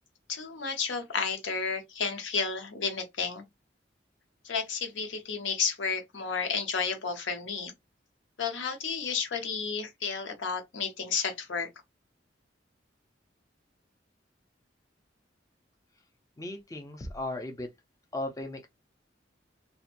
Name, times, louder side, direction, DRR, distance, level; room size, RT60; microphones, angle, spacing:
voice 1, 0.3-3.4 4.4-7.7 8.4-11.7, left 5 dB, 90° left, 0.7 m, -32 dB
voice 2, 16.4-17.7 18.1-18.7, left 1 dB, 20° left, 0.4 m, -36 dB
2.8 x 2.2 x 2.5 m
head